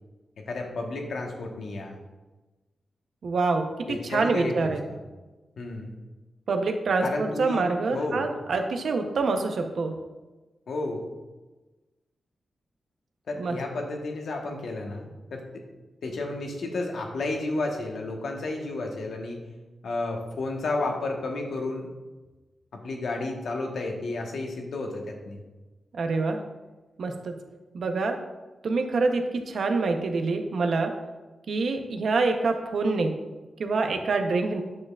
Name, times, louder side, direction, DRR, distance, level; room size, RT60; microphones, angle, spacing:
voice 1, 0.5-2.0 3.9-5.0 5.6-5.9 7.0-8.2 10.7-11.0 13.3-15.4 16.0-19.4 19.8-21.9 22.7-25.4, left 2 dB, 80° left, 1 dB, 1.2 m, -32 dB
voice 2, 3.2-4.8 6.5-10.0 13.4-13.6 25.9-26.4 27.0-27.3 27.7-28.2 28.6-30.9 31.5-33.1 33.6-34.6, right 3 dB, 75° right, 5 dB, 0.7 m, -26 dB
8.6 x 6.4 x 2.4 m, 1.2 s
cardioid pair, 70°, 0 cm